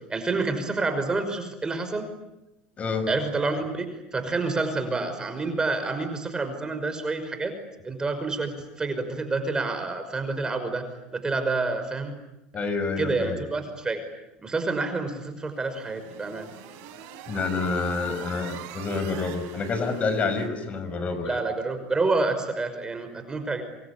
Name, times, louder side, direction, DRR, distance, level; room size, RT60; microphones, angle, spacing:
voice 1, 0.1-2.1 3.1-7.5 7.8-10.8 11.1-12.1 12.5-12.6 13.0-14.0 14.4-16.5 21.2-23.6, right 3 dB, 20° right, 8 dB, 5.6 m, -28 dB
voice 2, 2.8-3.1 12.5-13.4 17.3-21.4, left 4 dB, 35° left, 10 dB, 5.8 m, -28 dB
sound 1, 15.5-20.5, right 9 dB, 65° right, 6.3 m, -44 dB
27.0 x 25.5 x 8.6 m, 0.94 s
supercardioid pair, 105°, 4 cm